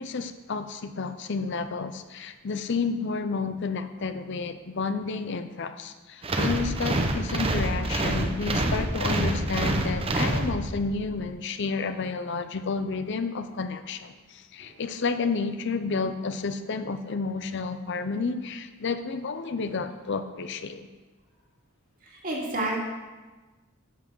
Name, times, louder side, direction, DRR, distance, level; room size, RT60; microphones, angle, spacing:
voice 1, 0.0-20.9, left 4 dB, 55° left, 10 dB, 0.5 m, -31 dB
Marching creatures, 6.2-11.0, right 1 dB, 25° right, 0.7 m, -27 dB
voice 2, 22.2-22.8, right 2 dB, 40° right, -3 dB, 2.3 m, -29 dB
10.5 x 5.9 x 6.1 m, 1.2 s
head